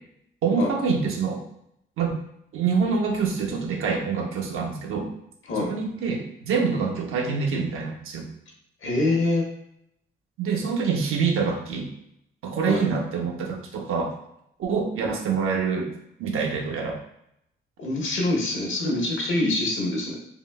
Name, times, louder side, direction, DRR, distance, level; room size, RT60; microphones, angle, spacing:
voice 1, 0.4-1.4 2.0-2.2 2.5-5.1 5.7-8.3 10.4-11.9 12.4-14.1 14.6-15.9 16.2-17.0, right 5 dB, 75° right, 1 dB, 0.7 m, -26 dB
voice 2, 8.8-9.4 12.6-12.8 17.8-20.2, left 2 dB, 65° left, 0 dB, 1.0 m, -25 dB
3.7 x 2.5 x 2.2 m, 0.76 s
cardioid pair, 75°, 21 cm